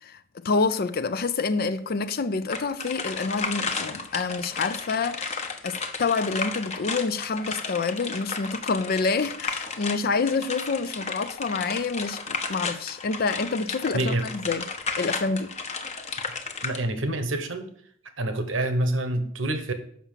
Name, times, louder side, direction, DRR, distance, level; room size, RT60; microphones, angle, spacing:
voice 1, 0.0-14.6 14.9-15.5, left 4 dB, 50° left, 0.5 m, -27 dB
sound 1, 2.5-16.8, left 4 dB, 35° left, 1.0 m, -33 dB
voice 2, 13.9-14.3 16.6-17.7 18.2-19.7, right 1 dB, 90° right, 1.3 m, -27 dB
7.2 x 5.9 x 7.3 m
head